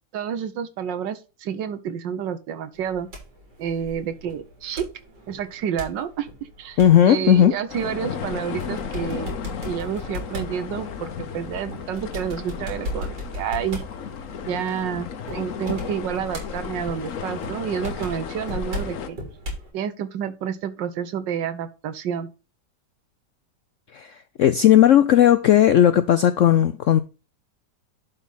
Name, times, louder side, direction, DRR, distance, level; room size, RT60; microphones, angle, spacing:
voice 1, 0.1-3.1 3.6-4.9 5.3-6.8 7.0-9.3 9.6-13.8 14.5-19.2 19.7-22.3, right 8 dB, 90° right, 1.5 m, -29 dB
sound 1, 2.7-19.7, equal, 65° right, 3.9 m, -38 dB
voice 2, 6.8-7.5 23.9-24.1 24.4-27.0, left 11 dB, 80° left, 0.7 m, -15 dB
sound 2, 7.7-19.1, left 7 dB, 55° left, 1.1 m, -34 dB
11.0 x 4.1 x 3.8 m
omnidirectional pair, 1.9 m